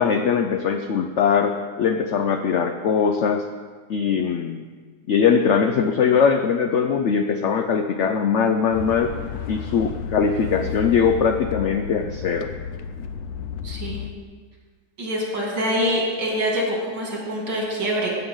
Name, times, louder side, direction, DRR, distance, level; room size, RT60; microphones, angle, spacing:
voice 1, 0.0-3.5 3.9-4.7 5.1-9.2 9.5-12.5, left 6 dB, 90° left, 6 dB, 0.6 m, -21 dB
sound 1, 8.7-14.1, left 8 dB, 70° left, 1.0 m, -32 dB
voice 2, 13.6-14.0 15.0-18.1, equal, 80° right, -3 dB, 3.2 m, -25 dB
15.0 x 7.8 x 3.8 m, 1.5 s
omnidirectional pair, 1.9 m